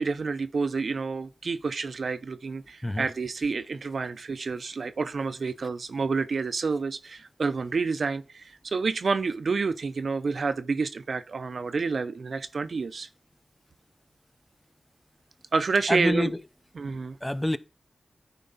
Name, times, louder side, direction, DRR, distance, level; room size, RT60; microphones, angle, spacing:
voice 1, 0.0-13.1 15.5-16.3 16.8-17.2, right 4 dB, 75° right, 0.6 m, -29 dB
voice 2, 15.9-16.4 17.2-17.6, left 1 dB, 10° left, 0.7 m, -26 dB
10.5 x 4.4 x 3.9 m
cardioid pair, 45°, 0 cm